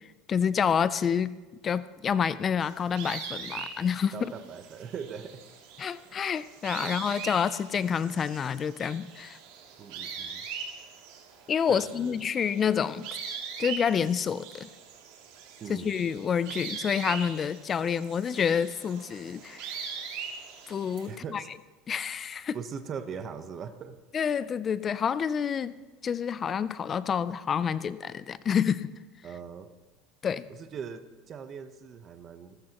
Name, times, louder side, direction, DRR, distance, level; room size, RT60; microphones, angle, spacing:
voice 1, 0.3-1.3 1.6-4.3 5.8-9.4 11.5-13.1 13.6-14.7 15.7-19.8 20.7-21.4 21.9-22.6 24.1-25.8 26.0-28.9 30.2-30.4, left 7 dB, 25° left, 16 dB, 0.4 m, -28 dB
sound 1, 2.6-21.1, right 6 dB, 70° right, 2.6 m, -41 dB
voice 2, 4.1-5.4 6.8-7.1 9.8-10.5 11.7-12.2 15.6-15.9 21.1-21.5 22.5-24.0 29.2-29.7 30.5-32.6, right 6 dB, 30° right, 9 dB, 1.0 m, -40 dB
28.5 x 14.0 x 3.0 m, 1.3 s
cardioid pair, 155°, 0 cm